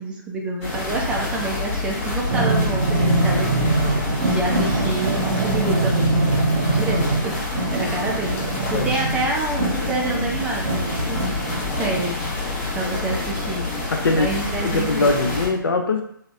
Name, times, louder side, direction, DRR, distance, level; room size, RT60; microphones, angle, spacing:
voice 1, 0.0-3.7 4.2-6.2 6.7-7.4 7.7-11.3 11.8-12.2 12.7-13.7 14.1-15.4, right 2 dB, 10° right, -1 dB, 0.3 m, -28 dB
sound 1, 0.6-15.5, left 3 dB, 35° left, 0.7 m, -28 dB
sound 2, 2.3-12.0, right 2 dB, 70° right, 0.6 m, -23 dB
voice 2, 13.9-16.0, left 3 dB, 75° left, 4 dB, 0.5 m, -22 dB
2.8 x 2.1 x 2.3 m, 0.69 s
figure-of-eight pair, 135°, 12 cm